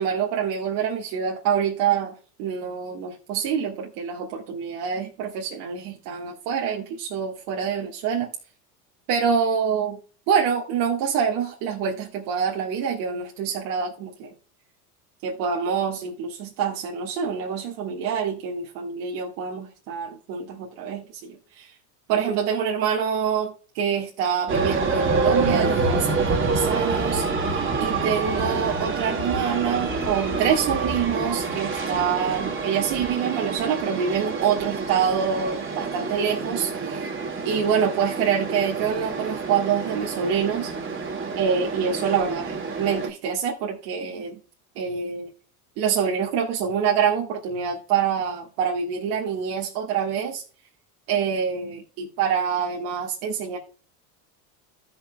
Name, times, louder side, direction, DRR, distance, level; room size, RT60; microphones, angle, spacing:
voice 1, 0.0-8.3 9.1-10.0 10.3-14.3 15.2-21.7 22.1-37.1 37.4-40.7 41.3-44.4 44.7-45.3 45.8-50.4 51.1-53.6, right 7 dB, 65° right, 1.7 m, -26 dB
sound 1, 24.5-43.1, right 4 dB, 25° right, 2.1 m, -27 dB
15.5 x 5.9 x 2.2 m
hypercardioid pair, 85°, 46 cm